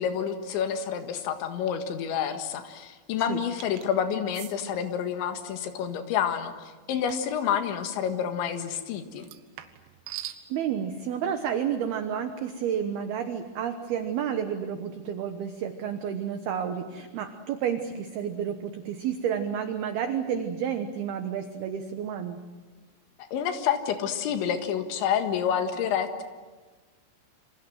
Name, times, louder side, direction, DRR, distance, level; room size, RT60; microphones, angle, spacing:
voice 1, 0.0-9.3 23.3-26.2, left 8 dB, 70° left, 7 dB, 3.8 m, -28 dB
sound 1, 3.6-3.9 4.3-4.6 7.1-7.3 9.2-10.4, right 13 dB, 85° right, 4.1 m, -41 dB
voice 2, 10.5-22.4, right 8 dB, 70° right, 7 dB, 2.5 m, -30 dB
28.0 x 26.5 x 7.8 m, 1.3 s
omnidirectional pair, 5.9 m